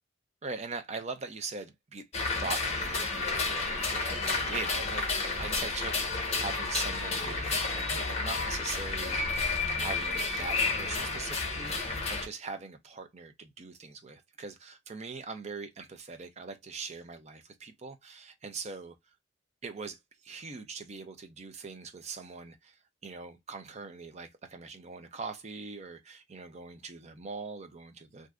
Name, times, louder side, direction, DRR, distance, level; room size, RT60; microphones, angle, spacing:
voice 1, 0.4-9.2 9.8-18.9 19.6-22.8 23.0-28.3, right 4 dB, 35° right, 0.5 m, -42 dB
sound 1, 2.1-12.3, left 3 dB, 35° left, 0.9 m, -31 dB
3.4 x 2.6 x 2.3 m
head